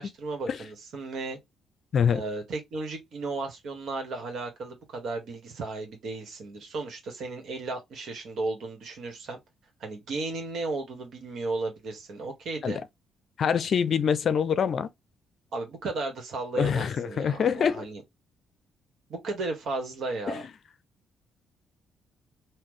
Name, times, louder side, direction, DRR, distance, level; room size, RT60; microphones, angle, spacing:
voice 1, 0.0-1.4 2.1-9.4 9.8-12.8 15.5-18.0 19.1-20.4, right 3 dB, 70° right, 1.7 m, -34 dB
voice 2, 13.4-14.9 16.6-17.9 20.3-20.4, left 7 dB, 55° left, 0.5 m, -25 dB
3.9 x 2.7 x 3.1 m
cardioid pair, 90°, 0 cm